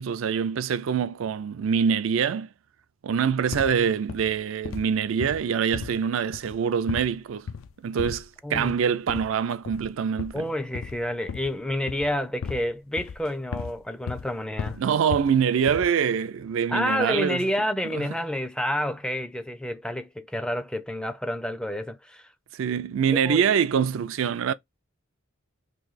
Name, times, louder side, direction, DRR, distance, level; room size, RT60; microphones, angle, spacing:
voice 1, 0.0-2.5 3.0-7.5 7.8-10.4 14.8-17.4 22.5-24.5, right 7 dB, 80° right, 0.4 m, -24 dB
sound 1, 3.5-3.8 4.1-4.4 4.6-5.0 5.2-6.0 6.3-6.6 6.9-7.2 7.5-7.7 8.0-8.3 8.5-8.8 9.1-9.4 9.7-9.9 10.2-11.6 11.9-12.7 13.0-13.8 14.1-14.3 14.6-15.4 15.7-16.0, left 6 dB, 80° left, 0.4 m, -36 dB
voice 2, 8.4-8.8 9.1-9.2 10.3-14.8 16.7-22.3 23.1-23.5, left 1 dB, 5° left, 0.4 m, -29 dB
3.1 x 2.6 x 3.9 m
head